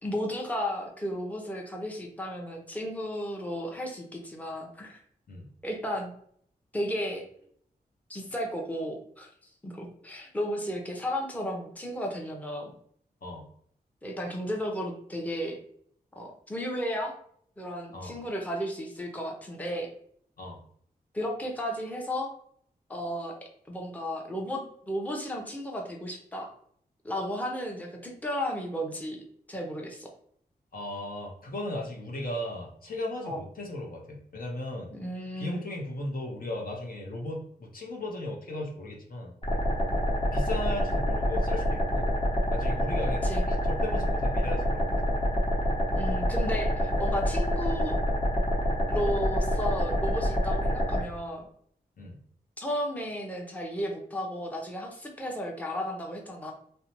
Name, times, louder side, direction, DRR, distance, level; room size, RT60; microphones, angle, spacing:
voice 1, 0.0-5.0 5.6-6.1 6.7-7.2 8.1-9.3 9.6-12.7 14.0-15.6 16.2-17.1 17.6-19.9 21.1-22.3 22.9-26.5 27.0-29.2 29.5-30.1 33.3-33.4 34.9-35.6 43.2-43.4 45.9-47.9 48.9-51.5 52.6-56.5, equal, 10° left, 0 dB, 0.7 m, -34 dB
voice 2, 30.7-34.9 35.3-39.4 40.3-42.1 42.5-45.2 52.0-52.2, left 1 dB, 55° left, -1 dB, 0.8 m, -36 dB
sound 1, 39.4-51.0, equal, 35° left, 1.0 m, -27 dB
2.6 x 2.1 x 2.9 m, 0.62 s
cardioid pair, 40°, 17 cm